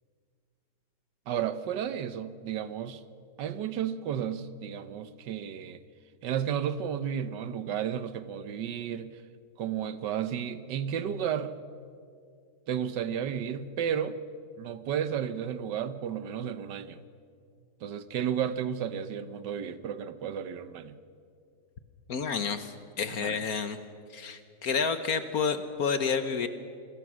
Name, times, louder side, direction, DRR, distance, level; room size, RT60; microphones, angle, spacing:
voice 1, 1.3-3.0 3.4-5.8 6.2-9.1 9.6-11.5 12.7-14.2 14.6-17.0 17.8-21.0 23.1-23.3, right 8 dB, 75° right, 1.5 m, -33 dB
voice 2, 22.1-23.8 24.1-26.5, left 6 dB, 60° left, 1.4 m, -30 dB
27.0 x 20.5 x 6.3 m
omnidirectional pair, 1.9 m